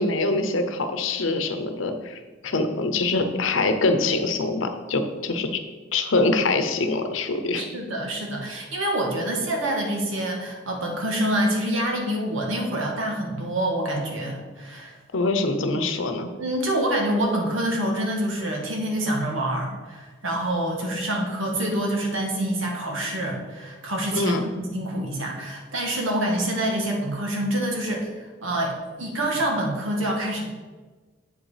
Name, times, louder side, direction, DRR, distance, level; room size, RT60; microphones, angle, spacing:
voice 1, 0.0-2.2 2.4-5.6 5.9-7.6 15.1-16.3 24.1-24.4, left 3 dB, 85° left, 7 dB, 0.8 m, -24 dB
voice 2, 7.6-14.9 16.4-30.5, right 1 dB, 90° right, 0 dB, 1.7 m, -26 dB
8.0 x 5.2 x 4.9 m, 1.3 s
head